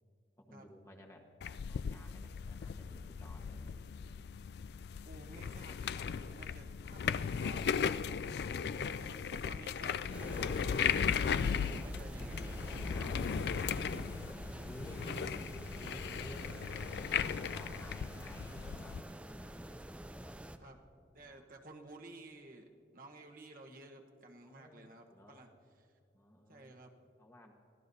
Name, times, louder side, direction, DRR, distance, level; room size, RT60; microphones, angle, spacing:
voice 1, 0.4-3.7 12.9-14.0 14.4-15.4 15.7-19.8 21.2-21.4 24.4-25.5 26.1-26.7 27.2-27.5, equal, 15° left, 1 dB, 1.2 m, -55 dB
sound 1, 1.4-19.0, left 7 dB, 60° left, 0.3 m, -37 dB
voice 2, 5.1-7.9 8.9-10.8 11.3-12.7 15.1-15.4 16.2-16.8 20.6-20.8 21.1-25.5 25.8-25.9 26.5-26.9, right 2 dB, 50° right, 2 dB, 1.1 m, -54 dB
sound 2, 10.1-20.6, right 1 dB, 5° right, 0.4 m, -46 dB
24.5 x 16.0 x 2.7 m, 2.6 s
head